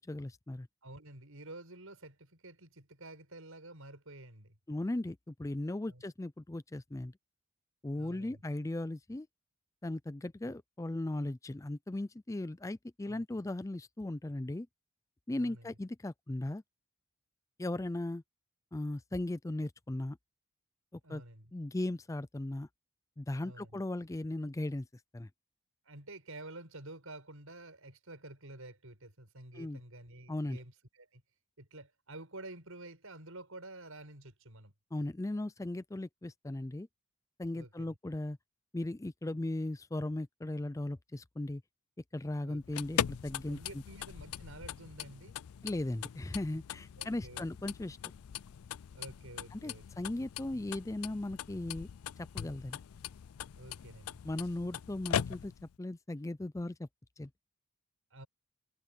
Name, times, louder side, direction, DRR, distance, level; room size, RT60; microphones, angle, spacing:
voice 1, 0.0-0.7 4.7-7.1 7.8-9.3 9.8-14.7 15.3-16.6 17.6-18.2 18.7-20.2 21.1-21.2 21.5-22.7 23.2-24.9 25.1-25.3 29.6-29.8 30.3-30.6 34.9-36.9 37.4-38.4 38.7-41.6 42.1-43.6 45.6-48.0 49.5-51.9 52.3-52.8 54.2-55.5 55.8-56.9 57.2-57.3, left 1 dB, 15° left, 0.4 m, -37 dB
voice 2, 0.8-4.6 5.8-6.0 7.9-8.4 13.0-13.2 15.4-15.7 21.0-21.5 23.4-23.8 25.8-31.2 31.6-34.7 37.5-38.0 42.4-42.6 43.5-45.4 47.0-47.4 48.9-50.1 53.5-54.2 58.1-58.3, right 2 dB, 75° right, 6.1 m, -50 dB
sound 1, 42.6-55.8, left 9 dB, 90° left, 0.4 m, -40 dB
head